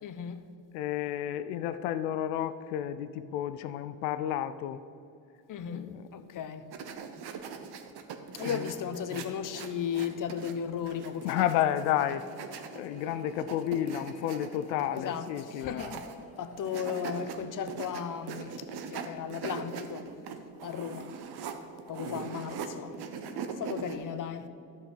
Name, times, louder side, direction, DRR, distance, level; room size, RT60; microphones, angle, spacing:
voice 1, 0.0-0.4 5.5-6.7 8.3-11.5 14.9-16.0 16.4-20.2 20.6-21.1 21.9-23.0 23.5-24.5, left 8 dB, 40° left, 0.9 m, -36 dB
voice 2, 0.7-4.8 5.7-6.4 8.4-8.7 9.1-9.2 11.2-12.3 12.7-16.0 22.0-22.3, left 11 dB, 70° left, 0.6 m, -32 dB
sound 1, 6.7-10.5 10.8-16.2 16.6-17.3 17.7-22.7 22.9-24.0, right 6 dB, 55° right, 1.1 m, -41 dB
sound 2, 11.3-17.3, left 1 dB, 15° left, 2.8 m, -52 dB
12.5 x 6.0 x 5.6 m
hypercardioid pair, 55°, 47 cm